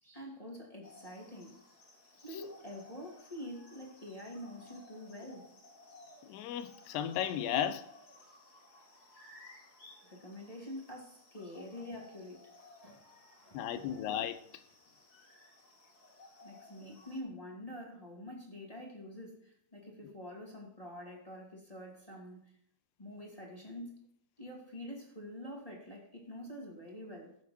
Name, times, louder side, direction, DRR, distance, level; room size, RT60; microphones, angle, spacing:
voice 1, 0.0-1.6 2.2-5.6 10.1-12.6 12.8-13.0 13.4-14.0 16.4-22.5 23.0-24.0 24.4-27.4, left 1 dB, 15° left, 1.5 m, -46 dB
sound 1, 0.8-17.2, left 2 dB, 30° left, 2.1 m, -58 dB
voice 2, 6.3-7.9 13.5-14.4, left 10 dB, 90° left, 3.0 m, -34 dB
19.0 x 7.4 x 2.8 m
omnidirectional pair, 4.6 m